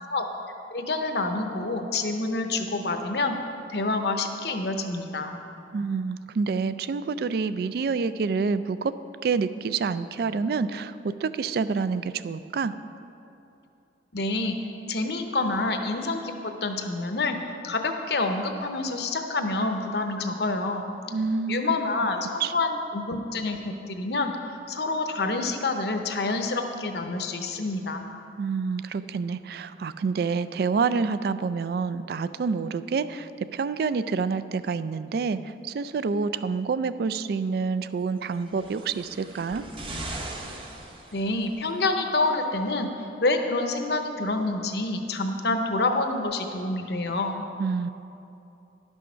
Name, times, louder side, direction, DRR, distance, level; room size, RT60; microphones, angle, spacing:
voice 1, 0.7-3.4 3.7-5.4 14.1-14.6 14.9-17.4 17.6-20.9 21.5-24.3 24.7-28.0 41.1-42.9 43.2-47.4, left 2 dB, 60° left, 5 dB, 0.8 m, -27 dB
voice 2, 5.7-8.9 9.2-12.7 21.1-21.8 22.4-22.5 28.4-39.6 47.6-47.9, right 5 dB, 60° right, 14 dB, 0.3 m, -28 dB
sound 1, 38.3-41.7 42.6-42.7, right 2 dB, 30° right, 0.8 m, -39 dB
11.0 x 6.3 x 5.7 m, 2.8 s
head